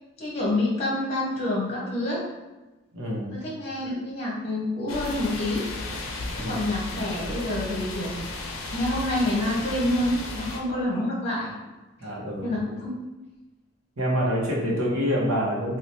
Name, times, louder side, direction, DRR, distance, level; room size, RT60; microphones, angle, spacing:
voice 1, 0.2-2.2 3.3-5.7 6.5-8.2 8.7-11.5 12.0-12.1 12.4-12.9, left 1 dB, 30° left, -4 dB, 0.9 m, -27 dB
voice 2, 2.9-3.4 6.4-6.7 12.0-12.5 14.0-15.8, equal, 90° right, -4 dB, 0.9 m, -26 dB
sound 1, 4.9-10.6, left 2 dB, 90° left, 0.5 m, -34 dB
3.2 x 2.4 x 2.7 m, 1.1 s
head